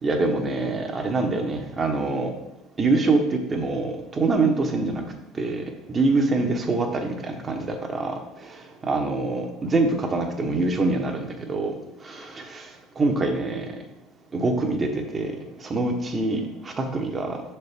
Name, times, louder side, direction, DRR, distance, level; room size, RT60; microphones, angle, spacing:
voice 1, 0.0-2.3 2.8-5.1 5.4-11.8 12.0-12.7 13.0-13.7 14.3-17.4, right 3 dB, 30° right, 4 dB, 1.0 m, -25 dB
6.2 x 4.4 x 3.5 m, 0.91 s
hypercardioid pair, 70°, 0 cm